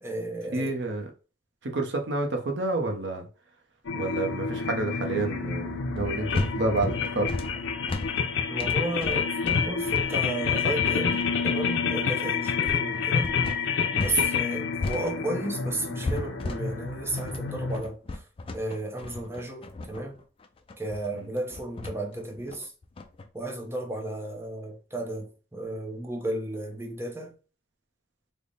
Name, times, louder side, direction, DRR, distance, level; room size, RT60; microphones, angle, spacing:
voice 1, 0.0-0.8 8.5-13.4 13.9-18.3 18.5-20.2 20.8-22.7 23.3-27.3, right 1 dB, 15° right, 0.6 m, -33 dB
voice 2, 0.5-1.1 1.6-3.2 4.0-7.3 21.1-21.3, right 2 dB, 70° right, 0.7 m, -29 dB
sound 1, 3.8-17.8, left 6 dB, 80° left, 0.5 m, -28 dB
sound 2, 6.0-14.2 14.5-23.3, left 2 dB, 30° left, 0.3 m, -35 dB
3.4 x 2.1 x 3.9 m
head